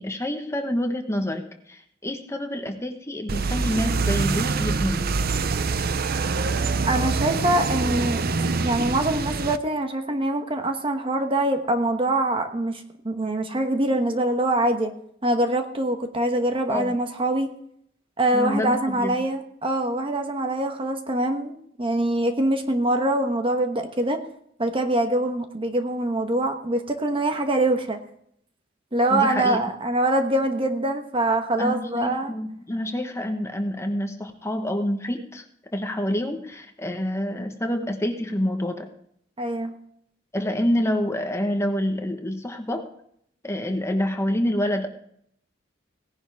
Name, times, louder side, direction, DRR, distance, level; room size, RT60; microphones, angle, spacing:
voice 1, 0.0-5.1 16.7-17.0 18.3-19.1 29.1-29.6 31.6-35.4 35.7-38.9 40.3-42.9 43.4-44.9, left 1 dB, 15° left, 4 dB, 1.3 m, -27 dB
sound 1, 3.3-9.6, right 4 dB, 55° right, 0.6 m, -25 dB
voice 2, 6.8-14.9 15.2-17.5 18.2-24.2 24.6-28.0 28.9-32.3 39.4-39.7, right 1 dB, 30° right, 6 dB, 1.2 m, -24 dB
17.5 x 10.5 x 3.5 m, 0.69 s
head